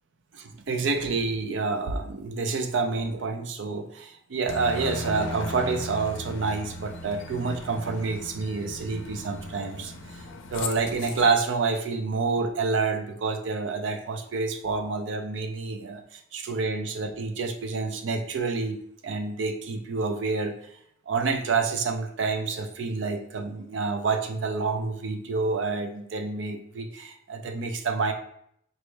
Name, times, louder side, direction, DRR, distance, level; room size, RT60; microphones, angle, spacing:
voice 1, 0.3-20.6 21.1-28.1, right 4 dB, 80° right, 6 dB, 0.5 m, -28 dB
Aircraft, 4.5-11.3, left 1 dB, 80° left, 0.4 m, -37 dB
4.5 x 2.1 x 3.2 m, 0.69 s
head